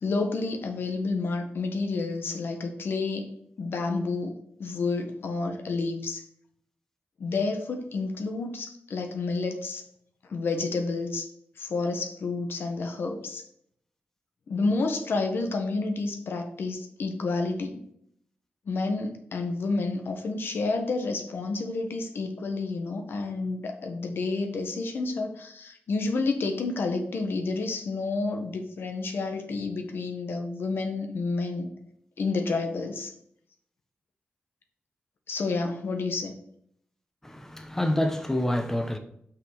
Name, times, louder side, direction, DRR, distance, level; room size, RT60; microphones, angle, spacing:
voice 1, 0.0-3.3 3.6-4.3 4.6-6.2 7.2-9.8 10.3-11.2 11.6-13.4 14.5-17.8 18.7-31.7 32.2-33.1 35.3-36.3, left 3 dB, 75° left, 1.4 m, -30 dB
voice 2, 37.2-39.0, left 1 dB, 10° left, 1.0 m, -27 dB
6.0 x 5.8 x 6.5 m
wide cardioid pair, 115°, 4 cm